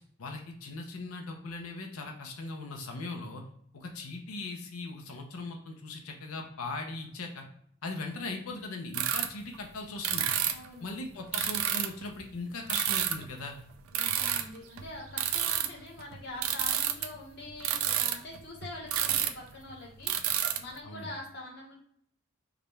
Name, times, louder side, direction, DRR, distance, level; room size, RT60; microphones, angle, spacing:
voice 1, 0.2-3.4 3.7-7.5 7.8-10.4 10.8-13.6 20.8-21.1, left 3 dB, 85° left, 3 dB, 0.6 m, -39 dB
sound 1, 8.9-9.3 9.5-9.6 10.0-10.7 11.3-12.1 12.7-13.3 13.7-17.1 17.5-19.4 19.7-19.8 20.0-20.6, right 10 dB, 75° right, 0.4 m, -29 dB
voice 2, 10.5-10.9 13.9-21.7, left 2 dB, 50° left, -2 dB, 1.2 m, -44 dB
4.8 x 2.3 x 3.1 m, 0.65 s
head